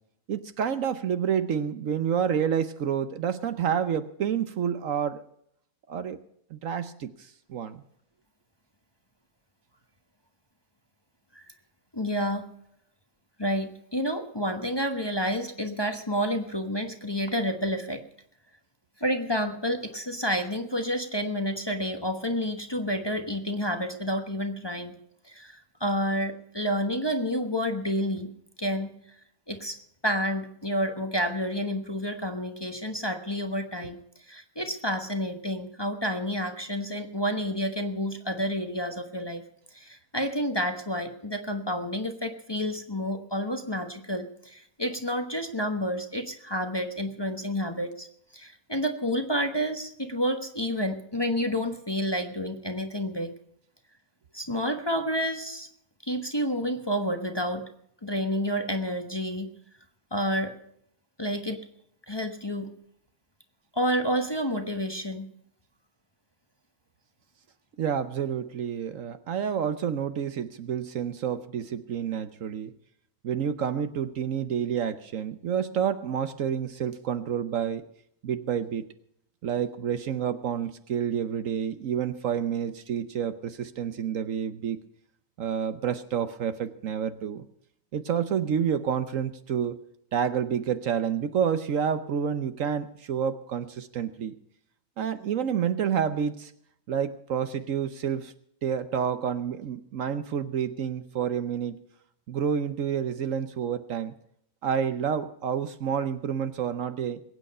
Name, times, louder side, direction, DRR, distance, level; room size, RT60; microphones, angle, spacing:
voice 1, 0.3-5.2 5.9-6.2 6.5-7.8 67.8-72.7 73.2-77.9 78.2-78.8 79.4-84.8 85.4-87.5 87.9-89.8 90.1-94.3 95.0-96.5 96.9-98.3 98.6-101.8 102.3-104.1 104.6-107.2, right 8 dB, 65° right, 11 dB, 1.1 m, -29 dB
voice 2, 11.9-12.5 13.4-18.0 19.0-25.0 25.2-28.3 28.6-28.9 29.5-29.8 30.0-34.0 34.3-39.4 39.7-48.1 48.3-53.3 54.3-55.7 56.0-57.6 58.0-59.5 60.1-60.5 61.2-61.6 62.1-62.7 63.7-65.2, equal, 20° left, 5 dB, 1.1 m, -29 dB
22.0 x 9.0 x 5.4 m, 0.72 s
omnidirectional pair, 1.6 m